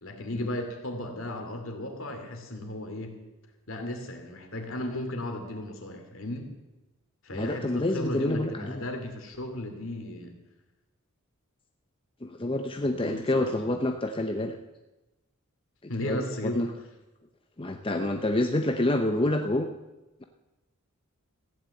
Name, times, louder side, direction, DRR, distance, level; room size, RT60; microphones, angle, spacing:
voice 1, 0.0-3.1 3.7-6.6 7.2-10.3 12.8-13.9 15.9-16.6, left 1 dB, 60° left, 4 dB, 2.7 m, -35 dB
voice 2, 7.3-8.8 12.2-14.6 16.0-16.7 17.6-19.7, left 1 dB, 25° left, 5 dB, 0.7 m, -27 dB
15.5 x 10.0 x 7.8 m, 1.1 s
head